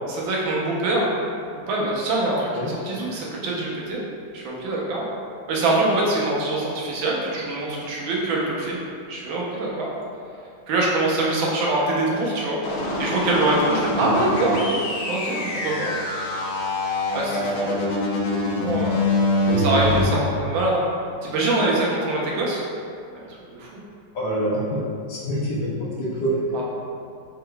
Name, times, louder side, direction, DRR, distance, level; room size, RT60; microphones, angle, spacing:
voice 1, 0.1-1.1 1.7-4.0 4.3-5.1 5.5-8.8 9.1-9.9 10.7-12.6 13.0-14.8 15.1-15.9 17.1-17.7 18.6-19.1 19.6-20.8 21.2-22.6 23.5-23.7 26.5-26.7, right 2 dB, 85° right, -3 dB, 1.5 m, -24 dB
sound 1, 12.6-20.0, left 1 dB, 85° left, 1.4 m, -25 dB
voice 2, 19.5-20.2 24.1-24.8 25.1-25.7 26.0-26.3, right 1 dB, 70° left, -6 dB, 1.2 m, -26 dB
4.2 x 3.8 x 2.2 m, 2.4 s
omnidirectional pair, 2.1 m